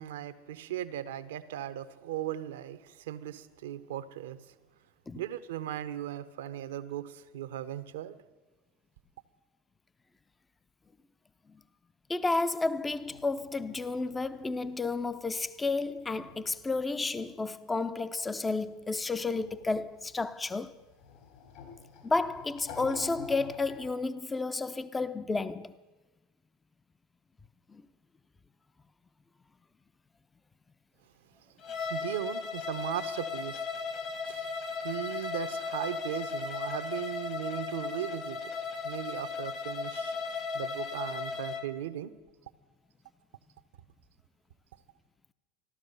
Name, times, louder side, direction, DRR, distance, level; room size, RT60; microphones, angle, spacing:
voice 1, 0.0-4.5 5.1-8.2 31.9-33.7 34.2-38.5 38.8-40.2 40.5-42.1, right 11 dB, 80° right, 0.8 m, -38 dB
voice 2, 12.1-20.7 22.0-25.7 27.7-27.8, left 3 dB, 15° left, 0.5 m, -31 dB
sound 1, 12.9-17.4 17.7-24.0, left 6 dB, 65° left, 4.0 m, -51 dB
Bowed string instrument, 31.6-41.7, left 5 dB, 45° left, 1.6 m, -36 dB
15.0 x 12.0 x 6.8 m
hypercardioid pair, 90°, 0 cm